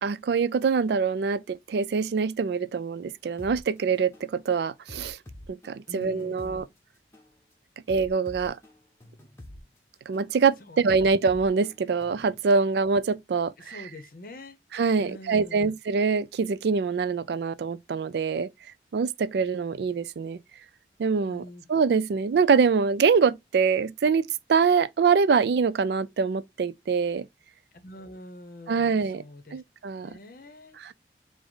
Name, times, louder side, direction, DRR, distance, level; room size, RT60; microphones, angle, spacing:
voice 1, 0.0-5.2 5.5-6.7 7.9-8.6 10.1-13.8 14.7-18.5 18.9-20.4 21.0-21.4 21.7-27.3 28.7-29.2 29.5-30.2 30.8-30.9, right 5 dB, 70° right, 0.3 m, -24 dB
sound 1, 3.4-3.6 4.1-4.3 4.9-6.6 7.1-7.3 7.9-9.6 10.1-10.3 10.9-12.4, left 1 dB, 15° left, 0.8 m, -46 dB
voice 2, 5.9-6.7 10.7-11.1 13.6-14.6 15.0-15.7 21.3-21.6 27.7-29.6 30.0-30.8, left 1 dB, 50° left, 0.7 m, -45 dB
4.9 x 2.1 x 3.9 m
head